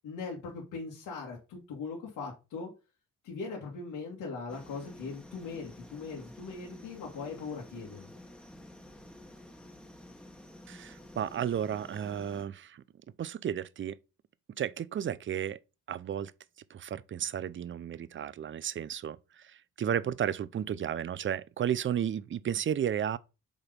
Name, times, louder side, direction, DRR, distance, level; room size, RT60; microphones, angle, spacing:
voice 1, 0.0-2.7 3.2-8.1, left 4 dB, 85° left, 2.2 m, -40 dB
sound 1, 4.5-12.4, left 1 dB, 5° left, 1.4 m, -51 dB
voice 2, 10.7-12.8 13.2-14.0 14.6-15.6 15.9-16.3 16.7-19.2 19.8-23.2, right 9 dB, 40° right, 0.6 m, -33 dB
7.0 x 4.1 x 5.2 m
cardioid pair, 90°, 30 cm